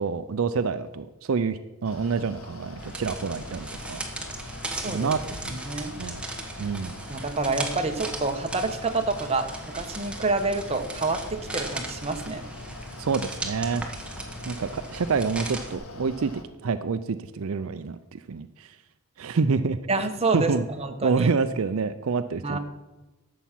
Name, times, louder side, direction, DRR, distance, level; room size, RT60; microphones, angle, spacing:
voice 1, 0.0-4.0 4.8-6.2 6.6-6.9 13.0-13.9 14.4-16.3 16.6-18.8 19.2-19.8 20.3-20.6 21.0-22.6, right 5 dB, 70° right, 11 dB, 0.5 m, -27 dB
Mechanical fan, 1.8-16.4, left 2 dB, 80° left, 1.4 m, -43 dB
sound 1, 2.8-15.8, right 1 dB, 5° right, 1.1 m, -37 dB
voice 2, 7.1-12.4 19.9-20.5 20.8-21.3 22.4-22.6, right 3 dB, 30° right, 6 dB, 1.0 m, -27 dB
11.5 x 7.2 x 5.8 m, 1.1 s
head